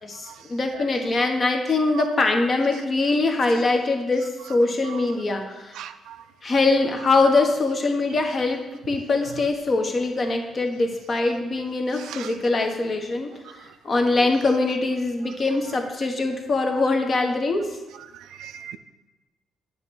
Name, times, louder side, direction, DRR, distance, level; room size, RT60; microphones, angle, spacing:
voice 1, 0.0-5.7 6.4-13.3 13.8-17.7, left 3 dB, 40° left, 4 dB, 1.0 m, -23 dB
voice 2, 5.8-6.1 12.1-12.3 18.4-18.8, right 9 dB, 85° right, 10 dB, 0.4 m, -38 dB
8.2 x 3.1 x 6.2 m, 1.1 s
cardioid pair, 90°, 0 cm